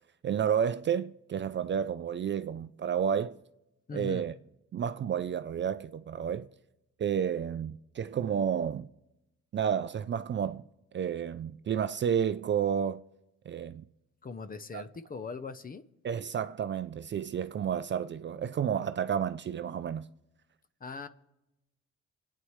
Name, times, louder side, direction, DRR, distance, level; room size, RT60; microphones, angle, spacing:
voice 1, 0.2-3.4 3.9-4.3 4.7-6.5 7.0-8.9 9.5-10.6 10.9-13.0 13.5-13.8 14.7-14.8 16.0-20.1, right 8 dB, 40° right, 0.4 m, -31 dB
voice 2, 3.9-4.2 14.2-15.8 20.8-21.1, left 4 dB, 30° left, 0.7 m, -40 dB
27.5 x 9.4 x 3.2 m
cardioid pair, 90°, 30 cm